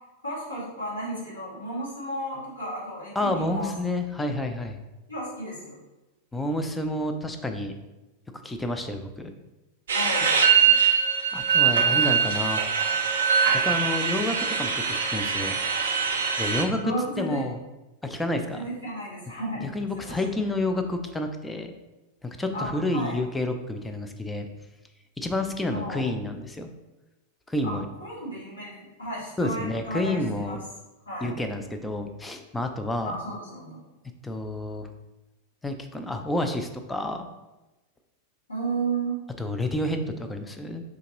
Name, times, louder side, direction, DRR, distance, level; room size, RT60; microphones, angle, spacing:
voice 1, 0.2-3.7 5.1-5.8 9.9-10.3 11.8-12.0 12.8-12.9 16.8-17.4 18.5-19.6 20.0-20.2 22.5-23.2 25.7-26.1 27.6-27.7 28.0-30.6 31.1-31.3 33.0-33.8 38.5-39.2, right 2 dB, 85° left, -9 dB, 1.3 m, -33 dB
voice 2, 3.1-4.8 6.3-7.7 8.4-9.3 11.3-12.6 13.6-15.6 16.4-17.6 18.0-18.7 19.6-21.7 22.2-24.5 25.2-26.7 27.5-27.9 29.4-30.6 31.2-33.2 34.2-34.9 35.6-37.3 39.4-40.8, left 1 dB, 10° left, 6 dB, 0.4 m, -29 dB
sound 1, 9.9-16.6, right 7 dB, 65° right, 0.4 m, -23 dB
3.7 x 2.8 x 2.9 m, 1.0 s
figure-of-eight pair, 90°, 0 cm